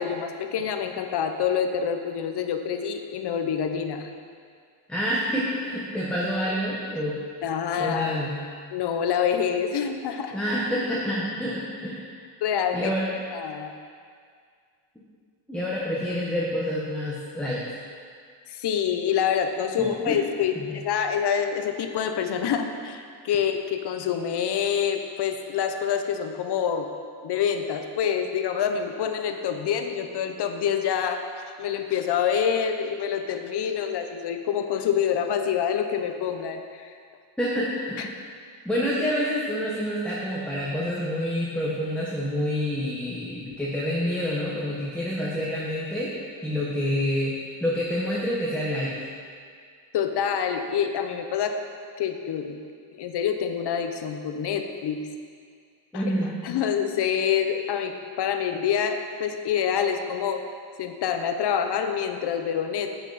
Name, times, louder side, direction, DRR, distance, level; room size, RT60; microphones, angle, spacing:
voice 1, 0.0-4.1 7.4-8.2 8.7-10.4 12.4-12.9 13.3-13.7 18.5-26.9 27.2-36.9 38.0-38.1 49.9-51.6 52.0-52.6 52.9-55.0 55.9-60.4 60.8-63.0, left 8 dB, 60° left, 6 dB, 0.9 m, -26 dB
voice 2, 4.9-7.2 7.8-8.4 10.3-12.0 12.7-13.1 15.5-17.6 19.8-20.2 20.5-20.7 37.4-38.0 38.6-46.1 46.4-49.0 55.9-56.3, equal, ahead, -6 dB, 1.2 m, -27 dB
10.0 x 7.1 x 4.1 m, 2.1 s
cardioid pair, 115°, 46 cm